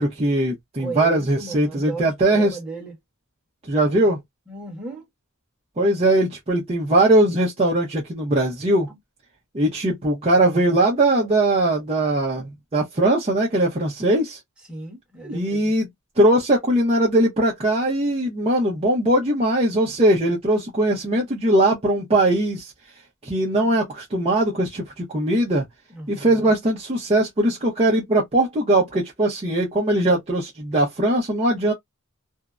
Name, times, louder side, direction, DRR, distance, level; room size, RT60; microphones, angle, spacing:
voice 1, 0.0-2.6 3.7-4.2 5.8-8.9 9.5-14.4 15.2-15.9 16.2-22.7 23.2-25.6 26.1-31.7, right 1 dB, 30° right, 0.6 m, -20 dB
voice 2, 0.8-2.9 4.5-5.0 8.9-9.0 14.7-15.7 25.9-26.4, right 3 dB, 5° right, 1.0 m, -35 dB
2.6 x 2.0 x 2.3 m
head